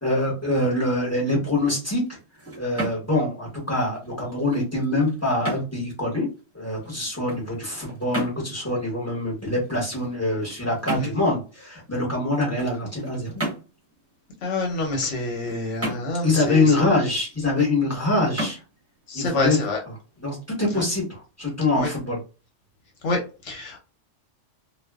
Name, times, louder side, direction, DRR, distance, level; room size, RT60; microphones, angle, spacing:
voice 1, 0.0-2.2 2.6-6.3 6.5-13.4 16.2-18.6 19.1-19.6 20.2-22.2, left 2 dB, 15° left, -3 dB, 1.0 m, -24 dB
sound 1, 1.5-20.3, right 1 dB, 15° right, 0.9 m, -37 dB
voice 2, 14.4-16.7 19.1-19.8 20.7-20.8 21.8-21.9 23.0-23.8, left 3 dB, 70° left, 2 dB, 1.1 m, -27 dB
2.4 x 2.2 x 2.3 m, 0.33 s
omnidirectional pair, 1.3 m